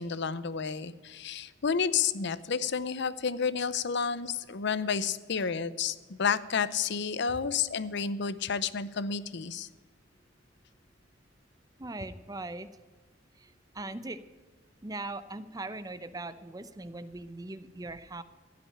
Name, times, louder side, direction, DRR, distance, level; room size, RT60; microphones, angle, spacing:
voice 1, 0.0-9.7, left 6 dB, 65° left, 16 dB, 0.6 m, -30 dB
voice 2, 11.8-12.7 13.4-13.5 13.7-14.2 14.8-18.2, right 2 dB, 20° right, 13 dB, 0.7 m, -40 dB
15.5 x 6.0 x 10.0 m, 1.3 s
head